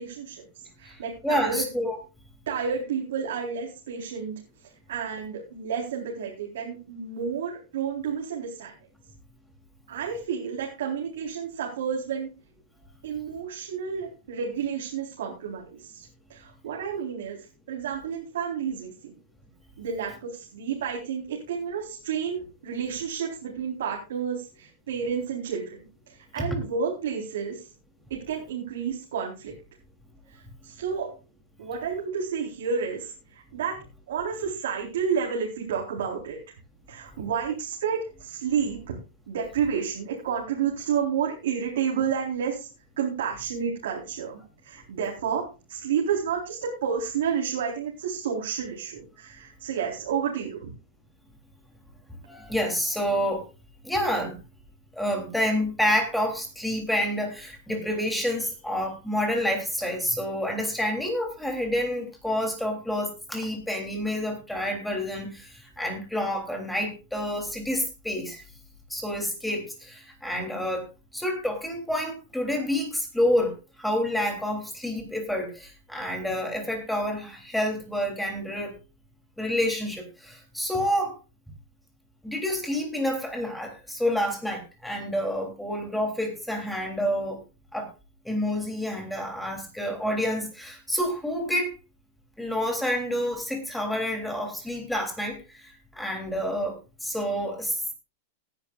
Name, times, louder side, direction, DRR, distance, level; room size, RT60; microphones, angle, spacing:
voice 1, 0.0-1.7 2.5-8.7 9.9-12.3 13.0-19.1 19.8-27.7 28.1-29.5 30.3-31.1 31.6-33.8 34.1-36.4 36.9-39.0 39.3-42.7 43.0-50.7, right 7 dB, 85° right, -1 dB, 4.2 m, -31 dB
voice 2, 0.8-2.0 52.3-53.4 53.8-54.3 54.9-68.4 68.9-70.8 71.1-78.7 79.4-81.1 82.2-87.4 87.7-87.9 88.2-91.7 92.4-97.9, equal, ahead, 3 dB, 3.3 m, -28 dB
19.0 x 10.5 x 2.5 m, 0.31 s
supercardioid pair, 160°, 0 cm